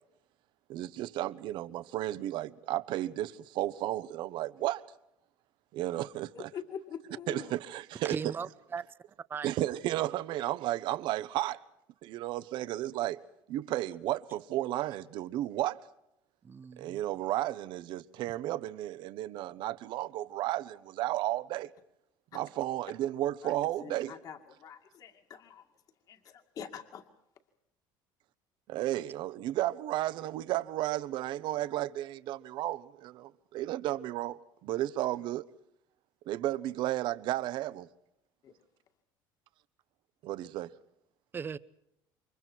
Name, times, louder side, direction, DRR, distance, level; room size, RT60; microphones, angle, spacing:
voice 1, 0.7-4.8 5.7-6.5 7.3-8.2 9.4-11.6 12.0-13.2 13.5-15.8 16.8-21.7 22.3-24.1 28.7-35.4 36.3-37.9 40.2-40.7, right 14 dB, 60° right, 1.2 m, -33 dB
voice 2, 6.3-7.5 22.3-22.4 23.4-25.6 26.1-27.0 38.4-38.5, left 7 dB, 40° left, 2.4 m, -45 dB
voice 3, 8.0-8.8 9.3-9.5 16.4-17.0 41.3-41.6, right 6 dB, 25° right, 0.8 m, -37 dB
29.0 x 24.5 x 4.6 m
cardioid pair, 155°, 9 cm